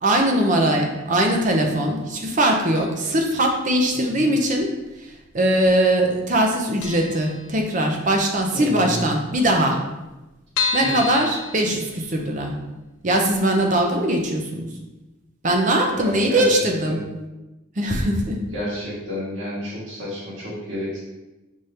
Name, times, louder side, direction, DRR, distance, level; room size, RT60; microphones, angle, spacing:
voice 1, 0.0-4.7 5.0-9.8 10.7-12.5 13.0-14.7 15.4-17.0 17.8-18.4, right 1 dB, 40° right, 2 dB, 0.6 m, -21 dB
sound 1, 2.7-3.3 3.5-3.6 4.6-5.3 5.6-5.7 6.0-6.1 6.4-6.5 6.8-8.1 8.5-8.6 8.9-9.0 9.2-9.3 9.8-12.4 12.8-12.9 13.3-13.4, left 5 dB, 90° left, 0.4 m, -30 dB
voice 2, 8.5-9.0 10.8-10.9 15.9-17.0 18.5-21.0, left 1 dB, 65° right, -7 dB, 1.5 m, -30 dB
5.2 x 3.3 x 2.8 m, 1.0 s
head